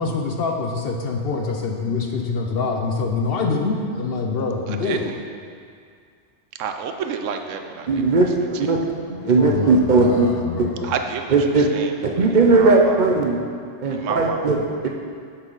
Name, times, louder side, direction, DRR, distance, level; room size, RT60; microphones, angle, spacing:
voice 1, 0.0-5.0 9.4-10.9, left 4 dB, 60° left, 2 dB, 0.8 m, -25 dB
voice 2, 4.7-5.2 6.6-8.1 8.5-8.8 10.8-12.2 12.5-13.0 13.9-14.5, right 6 dB, 85° right, 6 dB, 1.0 m, -30 dB
voice 3, 7.9-8.8 9.1-10.7 11.3-11.7 12.0-13.4 13.8-14.9, right 3 dB, 50° right, 1 dB, 0.6 m, -18 dB
7.9 x 5.7 x 3.9 m, 2.2 s
omnidirectional pair, 1.3 m